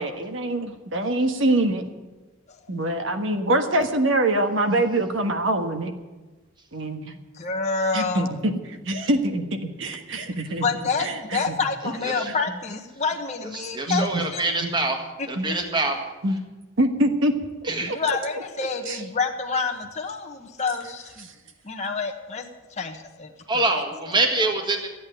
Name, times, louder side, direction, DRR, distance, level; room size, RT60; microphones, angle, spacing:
voice 1, 0.0-1.8 2.7-5.9 6.7-7.2 7.9-9.4 9.8-10.6 11.0-11.4 12.2-12.3 13.9-14.2 14.6-14.7 15.4-15.5 16.2-16.4 16.8-17.3 18.1-18.2 18.9-19.0 21.2-21.3, right 1 dB, 65° right, 6 dB, 1.5 m, -24 dB
voice 2, 7.4-8.4 10.6-14.4 17.8-21.3 21.6-23.3 24.4-24.5, left 4 dB, 35° left, 2 dB, 1.2 m, -28 dB
voice 3, 13.5-15.0 15.3-16.0 17.6-17.9 23.5-24.9, right 2 dB, 20° right, 3 dB, 1.7 m, -25 dB
14.0 x 8.6 x 9.1 m, 1.2 s
head